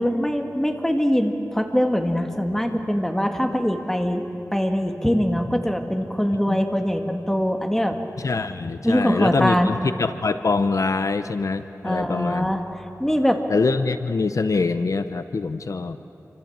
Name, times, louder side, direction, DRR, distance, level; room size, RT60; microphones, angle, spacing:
voice 1, 0.0-4.3 4.5-8.0 8.8-9.8 11.8-13.4, equal, 5° left, 4 dB, 2.2 m, -23 dB
voice 2, 8.2-12.5 13.5-16.0, left 4 dB, 65° left, 10 dB, 0.8 m, -24 dB
28.0 x 25.5 x 7.4 m, 2.8 s
wide cardioid pair, 85°, 6 cm